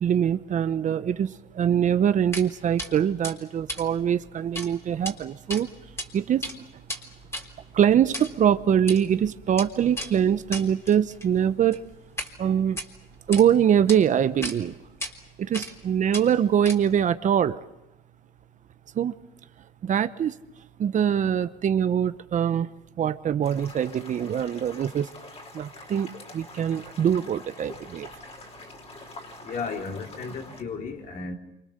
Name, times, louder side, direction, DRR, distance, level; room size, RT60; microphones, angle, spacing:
voice 1, 0.0-5.7 6.1-6.8 7.7-11.8 12.4-12.8 13.3-14.8 15.4-17.6 18.9-19.2 19.8-20.4 20.8-22.7 23.0-25.1 25.5-28.1, right 9 dB, 45° right, 1.0 m, -23 dB
sound 1, 2.3-2.5 2.8-2.9 3.2-4.7 4.9-5.1 5.5-6.1 6.3-12.3 12.7-13.4 13.9-14.0 14.4-14.6 15.0-15.1 15.5-15.8 16.1-17.0, left 1 dB, 15° left, 3.7 m, -36 dB
sound 2, 23.4-30.6, left 2 dB, 35° left, 4.8 m, -45 dB
voice 2, 29.4-31.3, left 5 dB, 55° left, 4.2 m, -34 dB
28.0 x 26.0 x 6.8 m
cardioid pair, 110°, 17 cm